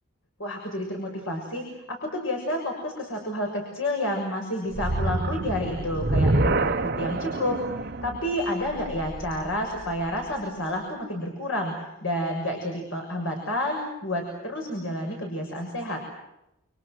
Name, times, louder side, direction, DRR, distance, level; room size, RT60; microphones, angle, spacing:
voice 1, 0.4-11.7 12.0-16.0, left 1 dB, 70° left, 2 dB, 6.8 m, -30 dB
sound 1, 4.7-10.0, right 2 dB, 50° right, 1.2 m, -27 dB
30.0 x 28.5 x 6.4 m, 0.87 s
head